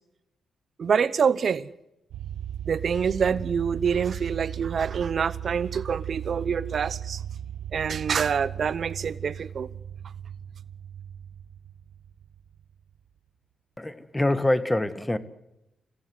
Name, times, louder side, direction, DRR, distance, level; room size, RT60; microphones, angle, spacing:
voice 1, 0.8-1.7 2.7-7.2 7.7-9.7, right 6 dB, 55° right, 0.9 m, -26 dB
sound 1, 2.1-12.8, right 10 dB, 85° right, 1.1 m, -37 dB
voice 2, 13.8-15.2, left 1 dB, 15° left, 1.7 m, -25 dB
25.0 x 17.0 x 8.0 m
cardioid pair, 70°, 0 cm